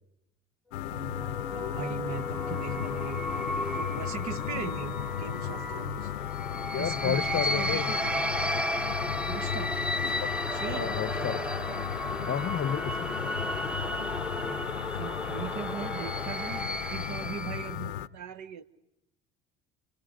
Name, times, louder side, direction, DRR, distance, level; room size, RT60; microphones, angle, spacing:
sound 1, 0.7-18.1, left 12 dB, 80° left, 0.8 m, -35 dB
sound 2, 0.9-17.7, left 1 dB, 5° right, 1.0 m, -34 dB
voice 1, 0.9-6.1 6.7-8.1 9.3-9.7 10.5-11.0 14.3-18.6, right 8 dB, 60° right, 1.5 m, -40 dB
voice 2, 6.7-8.0 10.2-10.3 10.7-11.4 12.3-13.1, left 9 dB, 40° left, 0.9 m, -31 dB
28.5 x 28.5 x 5.2 m
hypercardioid pair, 60°, 32 cm